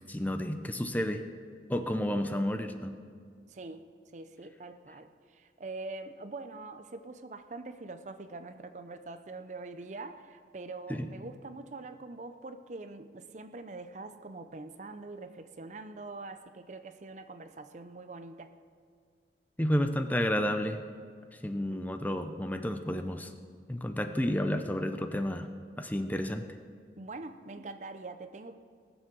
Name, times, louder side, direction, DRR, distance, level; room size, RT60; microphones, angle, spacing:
voice 1, 0.1-1.2 1.7-2.9 10.9-11.1 19.6-20.8 21.3-23.3 23.7-25.5 25.8-26.5, equal, 10° left, 7 dB, 0.5 m, -31 dB
voice 2, 3.5-3.9 4.1-18.5 21.7-21.8 27.0-28.6, right 3 dB, 40° right, 9 dB, 0.5 m, -44 dB
19.0 x 7.2 x 6.2 m, 2.1 s
head